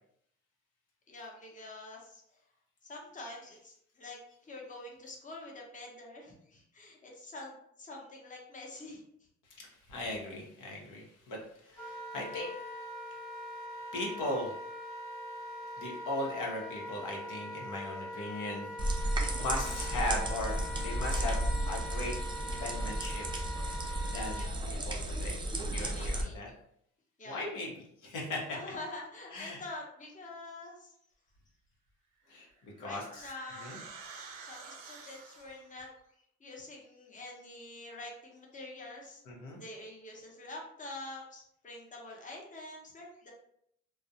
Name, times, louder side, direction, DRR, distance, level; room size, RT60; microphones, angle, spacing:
voice 1, 1.1-2.4 2.8-9.0 24.3-24.5 25.8-26.4 27.2-27.4 28.5-30.9 32.8-33.7 34.4-35.9 36.4-39.2 39.6-43.3, left 2 dB, 25° left, -1 dB, 0.7 m, -46 dB
voice 2, 9.5-14.7 15.0-15.1 15.5-19.0 19.2-21.4 21.7-22.1 22.6-23.3 24.1-26.5 27.2-27.7 28.0-28.6 29.3-29.6 32.3-33.3 33.6-33.8 39.3-39.6, left 1 dB, 90° left, -2 dB, 0.8 m, -39 dB
Wind instrument woodwind instrument, 11.7-24.5, left 1 dB, ahead, 1.0 m, -42 dB
sound 1, 18.8-26.2, right 1 dB, 15° right, 0.4 m, -33 dB
sound 2, 32.3-35.7, right 5 dB, 90° right, 0.5 m, -49 dB
2.3 x 2.0 x 2.6 m, 0.71 s
cardioid pair, 90°, 30 cm